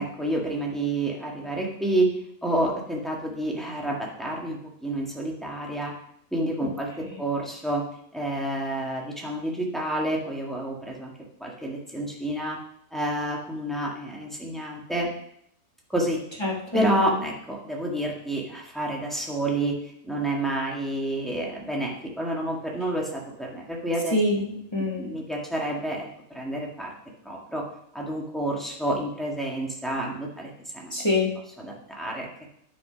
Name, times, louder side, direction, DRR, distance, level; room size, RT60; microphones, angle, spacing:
voice 1, 0.0-2.1 2.4-5.9 6.3-7.8 8.1-11.1 11.4-12.6 12.9-15.1 15.9-16.2 16.7-19.8 20.0-24.2 25.0-26.9 27.2-27.6 27.9-30.5 30.8-31.1 31.6-32.3, right 1 dB, ahead, -3 dB, 1.6 m, -29 dB
voice 2, 16.4-16.8 24.1-25.1 30.9-31.3, left 2 dB, 20° left, -3 dB, 1.5 m, -26 dB
9.6 x 5.1 x 5.0 m, 0.71 s
omnidirectional pair, 1.4 m